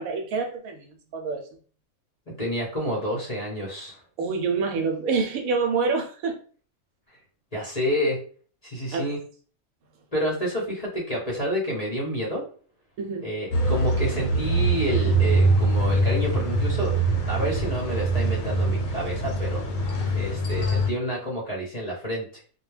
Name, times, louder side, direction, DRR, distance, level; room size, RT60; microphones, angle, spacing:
voice 1, 0.0-1.5 4.2-6.4 8.9-9.1 13.0-13.3, right 4 dB, 80° right, 1.0 m, -27 dB
voice 2, 2.3-4.0 7.1-7.2 7.5-8.2 8.6-9.2 10.1-12.4 13.2-17.0 17.3-19.6 20.1-22.4, equal, 35° left, 0.7 m, -29 dB
sound 1, 13.5-20.9, right 2 dB, 75° left, 1.0 m, -23 dB
2.3 x 2.2 x 3.1 m
omnidirectional pair, 1.4 m